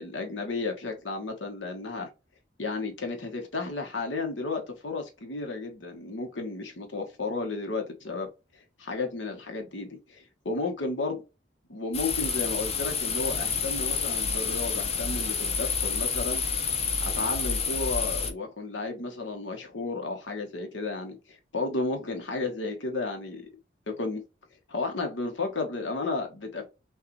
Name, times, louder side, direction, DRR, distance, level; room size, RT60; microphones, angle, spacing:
voice 1, 0.0-2.1 2.6-8.3 8.5-11.2 11.7-16.4 17.0-23.4 23.9-24.2 24.7-26.7, left 3 dB, 80° left, 1.1 m, -33 dB
sound 1, 11.9-18.3, left 5 dB, 35° left, 0.7 m, -29 dB
6.4 x 2.4 x 3.1 m
head